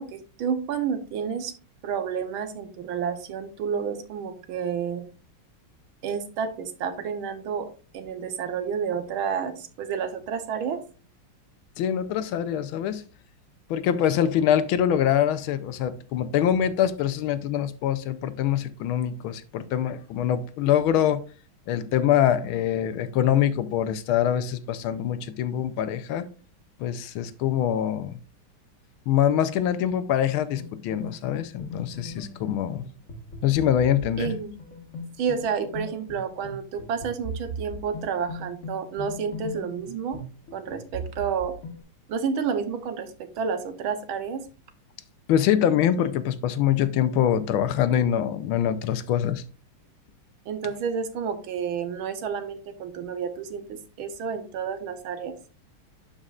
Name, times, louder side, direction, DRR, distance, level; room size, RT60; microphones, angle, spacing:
voice 1, 0.0-1.5 1.8-5.0 6.0-10.8 34.2-34.6 35.2-40.2 40.5-41.5 42.1-44.4 50.5-55.3, right 6 dB, 75° right, 9 dB, 1.7 m, -30 dB
voice 2, 11.8-13.0 13.7-21.2 21.7-26.2 26.8-28.2 29.1-32.9 33.4-34.3 45.3-49.4, left 10 dB, 80° left, 13 dB, 1.4 m, -24 dB
sound 1, 30.6-41.8, equal, 40° left, 1.6 m, -39 dB
11.5 x 5.1 x 2.4 m, 0.37 s
omnidirectional pair, 2.3 m